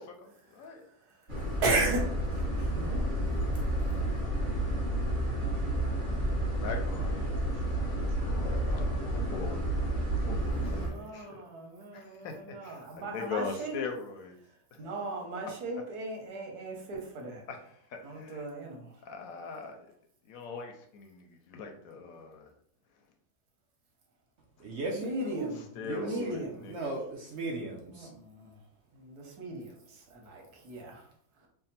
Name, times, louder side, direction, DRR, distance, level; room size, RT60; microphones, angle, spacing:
voice 1, 0.2-0.8 6.5-7.5 7.8-11.4 11.9-14.3 14.8-15.1 17.5-18.5 19.0-19.9 20.3-22.5 25.4-26.9, left 5 dB, 70° left, 4 dB, 0.9 m, -41 dB
sound 1, 1.3-10.9, right 1 dB, 35° right, 1.3 m, -30 dB
voice 2, 1.6-2.0 2.3-3.3 10.7-13.7 14.8-17.4 18.0-18.8 24.9-26.5 27.9-28.5 29.0-29.6 30.1-30.9, right 2 dB, 80° right, 0 dB, 1.5 m, -36 dB
voice 3, 24.6-26.3 26.7-28.1, right 2 dB, 60° right, -1 dB, 0.7 m, -37 dB
3.4 x 2.1 x 4.1 m, 0.65 s
omnidirectional pair, 1.6 m